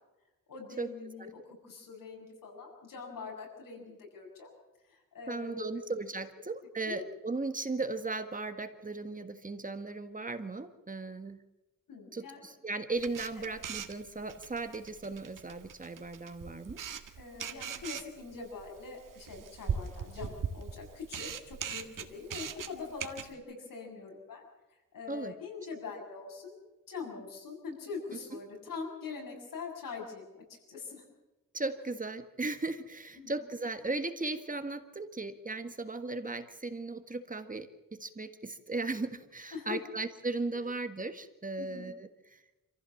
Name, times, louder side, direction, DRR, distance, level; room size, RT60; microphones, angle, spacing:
voice 1, 0.5-4.5 4.9-5.7 6.8-7.0 11.9-12.4 13.4-13.5 17.2-24.4 24.9-26.6 26.9-30.2 30.7-31.0 33.2-33.4 39.5-39.8 41.6-41.9, left 5 dB, 80° left, 1 dB, 7.4 m, -43 dB
voice 2, 5.3-11.4 12.1-16.8 25.1-25.3 28.3-28.4 31.5-42.6, right 3 dB, 25° right, 8 dB, 1.6 m, -37 dB
Camera, 13.0-23.3, right 7 dB, 75° right, 1.7 m, -40 dB
27.0 x 15.0 x 7.2 m, 1.0 s
wide cardioid pair, 115°, 33 cm